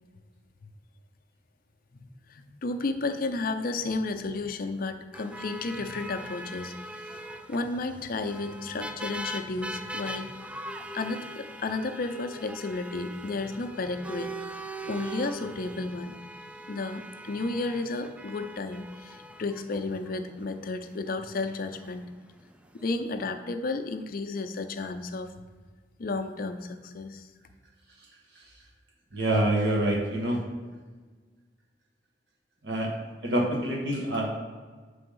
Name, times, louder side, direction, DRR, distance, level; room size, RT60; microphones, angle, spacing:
voice 1, 1.9-7.2 7.5-10.3 10.9-16.2 16.7-22.0 22.7-25.3 26.0-27.3, left 3 dB, 55° left, 7 dB, 0.5 m, -33 dB
sound 1, 5.1-23.0, right 1 dB, 5° right, 0.3 m, -41 dB
voice 2, 29.1-30.4 32.6-32.9 33.2-34.4, right 1 dB, 75° right, -1 dB, 1.4 m, -26 dB
6.7 x 3.5 x 5.4 m, 1.4 s
head